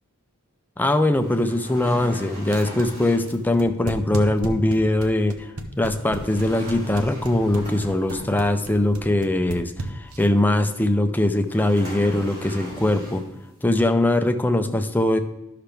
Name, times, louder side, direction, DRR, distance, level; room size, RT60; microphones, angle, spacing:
voice 1, 0.8-5.5 5.8-13.2 13.6-15.2, left 1 dB, 10° left, 7 dB, 0.5 m, -21 dB
sound 1, 1.2-3.4 6.0-8.7 11.4-13.4, equal, 40° right, 3.2 m, -39 dB
sound 2, 2.5-10.4, right 2 dB, 80° right, 0.9 m, -33 dB
11.5 x 5.7 x 3.4 m, 0.96 s
head